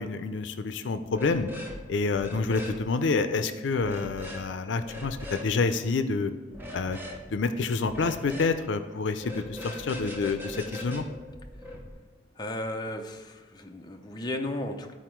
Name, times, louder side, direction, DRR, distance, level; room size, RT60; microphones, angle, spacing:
voice 1, 0.0-1.5 1.9-6.3 6.7-7.0 7.3-11.0, left 4 dB, 80° left, 10 dB, 0.5 m, -28 dB
sound 1, 1.1-1.8 2.1-2.8 3.8-4.4 4.8-5.5 6.5-7.2 7.9-8.6 9.2-11.9, left 1 dB, 10° right, 0.8 m, -40 dB
voice 2, 12.4-14.9, left 1 dB, 20° left, 3 dB, 0.6 m, -34 dB
13.0 x 4.3 x 4.5 m, 1.3 s
head